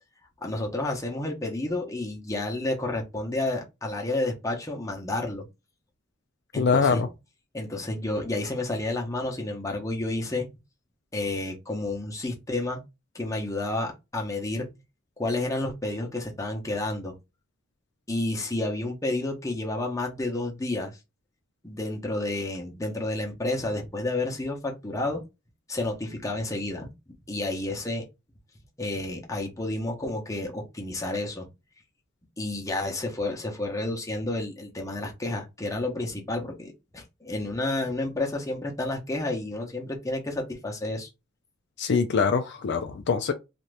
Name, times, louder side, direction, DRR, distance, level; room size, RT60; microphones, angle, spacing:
voice 1, 0.4-5.5 6.5-7.0 7.5-10.5 11.1-12.8 13.1-14.7 15.2-17.1 18.1-21.0 21.6-25.2 25.7-26.9 27.3-28.1 28.8-31.5 32.4-41.1, left 2 dB, 15° left, 0.8 m, -30 dB
voice 2, 6.6-7.1 41.8-43.3, left 5 dB, 60° left, 0.4 m, -23 dB
2.7 x 2.5 x 3.3 m
head